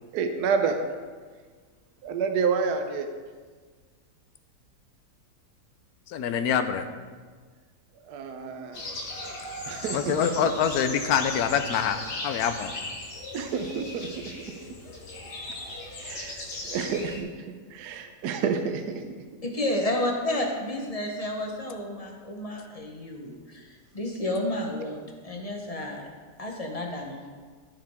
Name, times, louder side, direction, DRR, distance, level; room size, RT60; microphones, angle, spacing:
voice 1, 0.1-0.8 2.0-3.1 8.1-8.8 9.7-10.3 13.3-14.3 16.0-17.3 17.7-19.0, right 5 dB, 75° right, 6 dB, 1.2 m, -29 dB
voice 2, 6.1-6.9 9.9-12.7, left 7 dB, 75° left, 9 dB, 1.1 m, -25 dB
sound 1, 8.7-17.2, left 2 dB, 90° left, 1.9 m, -38 dB
voice 3, 19.5-26.0 26.4-27.2, left 1 dB, 30° left, 1 dB, 0.8 m, -31 dB
14.0 x 4.8 x 3.5 m, 1.5 s
omnidirectional pair, 1.8 m